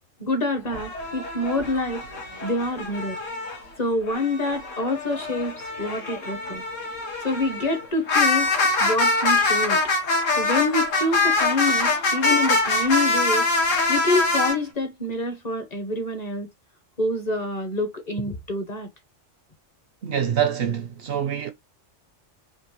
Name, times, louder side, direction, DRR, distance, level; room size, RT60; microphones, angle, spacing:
voice 1, 0.2-2.0 2.4-3.2 3.8-6.6 7.2-9.8 10.4-13.5 13.9-16.5 17.0-18.9, left 2 dB, 40° left, 0.7 m, -26 dB
sound 1, 0.7-3.6 4.0-14.6, left 3 dB, 80° left, 1.3 m, -24 dB
voice 2, 20.0-21.5, right 8 dB, 65° right, 0.6 m, -25 dB
3.6 x 2.5 x 2.9 m
omnidirectional pair, 1.3 m